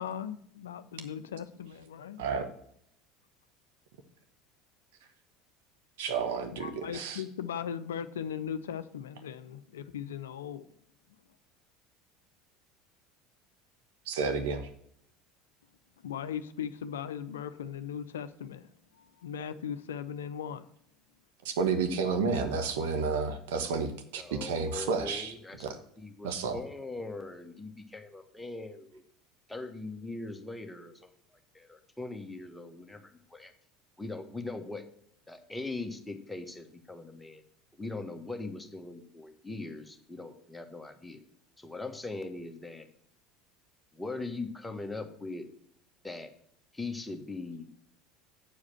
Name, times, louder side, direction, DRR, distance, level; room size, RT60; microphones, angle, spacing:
voice 1, 0.0-2.2 6.6-10.6 16.0-18.7 19.2-20.7, left 8 dB, 75° left, 0.5 m, -38 dB
voice 2, 6.0-7.2 14.1-14.7 21.4-25.3 25.6-25.8 26.2-26.6, right 5 dB, 70° right, 1.0 m, -31 dB
voice 3, 24.2-25.7 26.0-29.0 29.5-31.1 31.5-33.5 34.0-34.8 35.3-37.4 37.8-41.2 41.6-42.9 43.9-45.5 46.0-46.3 46.7-47.7, left 3 dB, 10° left, 1.5 m, -40 dB
8.5 x 4.9 x 7.6 m
figure-of-eight pair, 70°, 0 cm